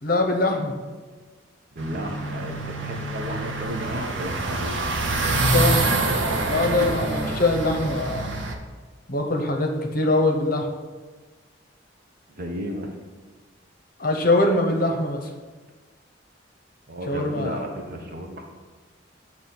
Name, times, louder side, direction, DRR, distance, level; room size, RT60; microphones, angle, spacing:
voice 1, 0.0-0.7 5.5-5.9 6.5-8.3 9.1-10.7 14.0-15.3 17.1-17.6, left 2 dB, 50° left, 2 dB, 0.8 m, -23 dB
voice 2, 1.7-4.7 12.3-12.9 16.9-18.4, equal, 50° right, 1 dB, 1.0 m, -33 dB
sound 1, 1.8-8.5, right 2 dB, 75° right, 0.8 m, -26 dB
6.9 x 3.1 x 5.9 m, 1.4 s
head